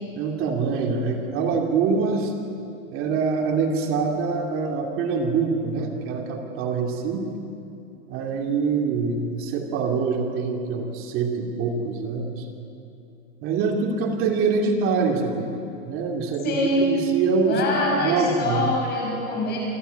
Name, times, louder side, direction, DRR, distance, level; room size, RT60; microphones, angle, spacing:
voice 1, 0.2-2.3 2.9-7.2 8.1-12.5 13.4-15.5 15.8-18.7, right 4 dB, 30° right, 2 dB, 2.6 m, -24 dB
voice 2, 16.4-16.9 17.4-19.6, left 2 dB, 25° left, -2 dB, 6.7 m, -24 dB
26.5 x 13.0 x 9.3 m, 2.7 s
supercardioid pair, 155°, 41 cm